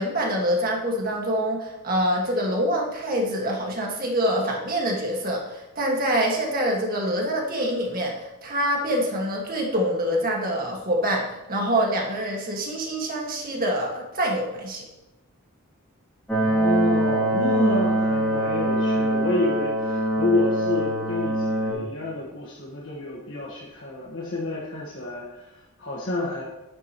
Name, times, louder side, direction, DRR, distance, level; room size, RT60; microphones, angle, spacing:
voice 1, 0.0-14.8, equal, 40° right, -1 dB, 1.9 m, -25 dB
sound 1, 16.3-21.7, right 1 dB, 5° left, 3.0 m, -23 dB
voice 2, 16.4-26.4, left 2 dB, 60° left, -5 dB, 1.5 m, -29 dB
9.8 x 9.4 x 3.1 m, 1.0 s
head